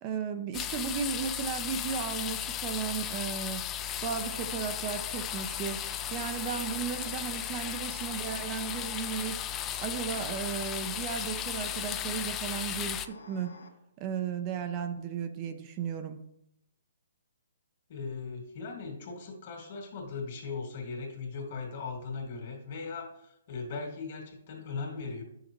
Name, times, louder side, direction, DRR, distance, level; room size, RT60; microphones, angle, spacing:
voice 1, 0.0-3.7 4.0-5.8 6.1-9.4 9.8-13.5 14.0-16.2, right 7 dB, 30° right, 8 dB, 0.6 m, -35 dB
sound 1, 0.5-13.1, left 10 dB, 20° left, 0.4 m, -35 dB
sound 2, 3.8-13.7, left 3 dB, 85° left, 1.6 m, -50 dB
voice 2, 17.9-25.2, left 4 dB, 50° left, 1 dB, 2.2 m, -38 dB
9.1 x 6.5 x 3.0 m, 0.78 s
hypercardioid pair, 145°, 0 cm